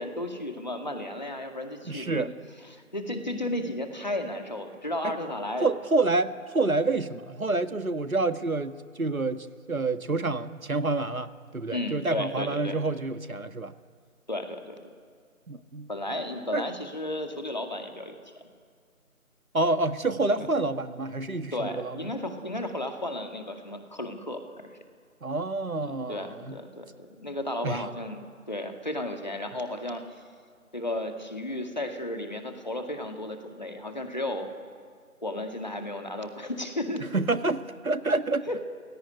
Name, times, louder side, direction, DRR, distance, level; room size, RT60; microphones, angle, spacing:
voice 1, 0.0-2.3 2.7-5.7 11.7-12.8 14.3-14.8 15.9-18.2 20.2-20.5 21.5-24.7 26.1-30.1 30.7-34.5 35.2-37.0 38.5-38.6, left 1 dB, 30° left, 5 dB, 2.2 m, -34 dB
voice 2, 1.8-2.3 5.0-5.1 5.6-13.7 15.5-15.9 16.5-16.6 19.5-22.1 25.2-26.5 27.6-27.8 37.1-38.5, right 3 dB, 75° right, 9 dB, 1.8 m, -28 dB
28.5 x 17.5 x 9.9 m, 2.1 s
figure-of-eight pair, 175°, 43 cm